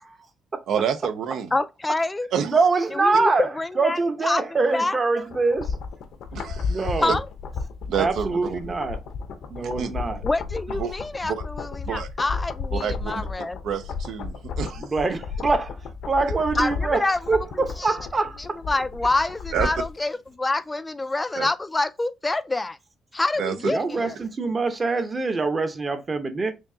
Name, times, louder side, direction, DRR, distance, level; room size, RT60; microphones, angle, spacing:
voice 1, 0.7-1.5 2.3-2.5 6.3-7.0 7.9-8.7 9.6-9.9 10.8-10.9 11.3-11.4 11.8-12.1 12.7-13.3 13.6-14.8 19.5-19.7 21.4-21.5 23.4-23.5, right 8 dB, 75° right, 0.5 m, -28 dB
voice 2, 1.5-2.3 2.9-4.4 4.7-5.0 7.0-7.3 10.2-13.6 16.5-17.2 17.5-18.0 18.4-22.8 23.1-24.2, left 2 dB, 20° left, 0.3 m, -27 dB
voice 3, 2.4-5.7 6.7-7.2 8.0-9.0 9.5-10.2 14.8-15.8 16.1-18.6 23.7-26.5, right 3 dB, 35° right, 0.9 m, -24 dB
sound 1, 5.3-20.0 20.3-20.4, left 5 dB, 70° left, 0.7 m, -33 dB
4.4 x 2.7 x 2.7 m
cardioid pair, 90°, 0 cm